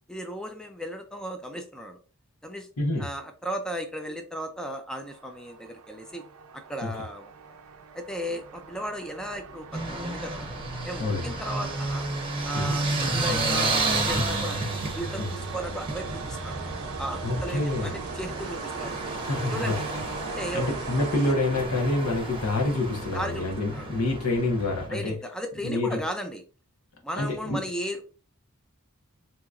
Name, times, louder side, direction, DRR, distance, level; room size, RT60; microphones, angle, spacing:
voice 1, 0.1-2.0 2.4-2.7 3.0-6.2 6.5-7.3 7.9-10.5 10.8-12.1 12.4-13.7 14.1-14.6 14.9-16.6 17.0-19.0 19.5-19.9 20.3-20.7 23.1-23.5 23.7-23.9 24.9-26.4 27.0-28.0, equal, 5° left, 5 dB, 0.3 m, -35 dB
voice 2, 2.8-3.1 6.8-6.9 11.0-11.3 12.5-12.7 15.2-15.3 17.2-17.9 19.2-19.8 20.5-25.1 25.6-26.0 27.1-27.7, left 2 dB, 80° left, 1 dB, 1.0 m, -27 dB
sound 1, 5.0-21.8, right 5 dB, 70° right, 0.5 m, -40 dB
sound 2, 9.7-24.9, right 2 dB, 25° right, 0.7 m, -31 dB
3.9 x 2.8 x 2.4 m, 0.37 s
head